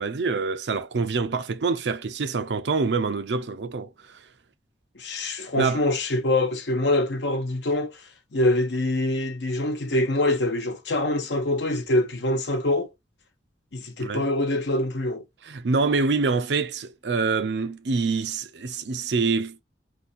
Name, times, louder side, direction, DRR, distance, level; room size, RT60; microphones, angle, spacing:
voice 1, 0.0-4.2 5.6-5.9 14.0-14.3 15.4-19.6, right 4 dB, 75° right, 0.6 m, -26 dB
voice 2, 5.0-7.9 8.3-12.9 13.7-15.2, left 1 dB, 85° left, 1.0 m, -24 dB
4.0 x 2.6 x 4.1 m
head